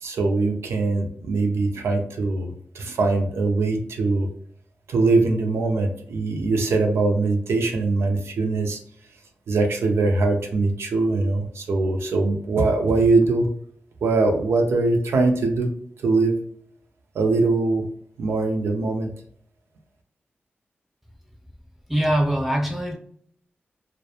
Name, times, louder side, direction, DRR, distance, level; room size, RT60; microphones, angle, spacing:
voice 1, 0.0-4.3 4.9-8.8 9.5-13.5 14.0-15.7 16.0-16.4 17.1-17.9 18.2-19.1, right 3 dB, 90° right, 4 dB, 0.4 m, -22 dB
voice 2, 21.9-23.0, right 1 dB, 5° right, 2 dB, 0.7 m, -22 dB
2.2 x 2.1 x 2.7 m, 0.62 s
cardioid pair, 50°, 4 cm